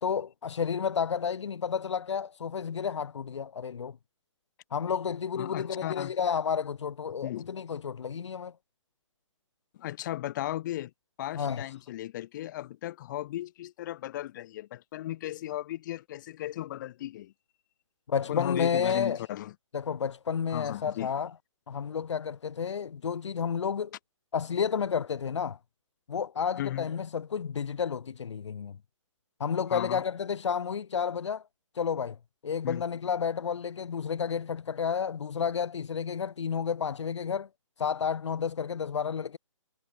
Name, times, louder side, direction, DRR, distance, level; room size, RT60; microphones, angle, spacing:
voice 1, 0.0-4.0 4.7-8.5 11.4-11.7 18.1-19.2 19.7-21.3 21.7-23.9 24.3-25.6 26.1-28.8 29.4-31.4 31.7-32.2 32.4-37.5 37.8-39.4, left 7 dB, 65° left, 3.3 m, -31 dB
voice 2, 5.4-6.1 7.2-7.5 9.7-10.9 11.2-17.3 18.3-19.5 20.5-21.1 26.6-26.9 29.7-30.0 32.6-32.8, left 14 dB, 35° left, 7.5 m, -36 dB
hypercardioid pair, 150°, 16 cm